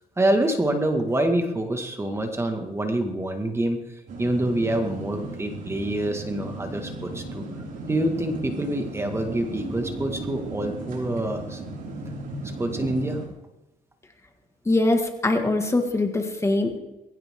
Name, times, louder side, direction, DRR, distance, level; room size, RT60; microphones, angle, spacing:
voice 1, 0.2-3.8 4.2-7.5 7.9-11.6 12.6-13.2, right 1 dB, 15° right, 5 dB, 1.9 m, -26 dB
sound 1, 4.1-13.3, right 2 dB, 55° right, 5.3 m, -36 dB
voice 2, 14.7-16.8, left 2 dB, 15° left, 5 dB, 1.9 m, -22 dB
21.0 x 16.0 x 3.8 m, 0.97 s
cardioid pair, 110°, 17 cm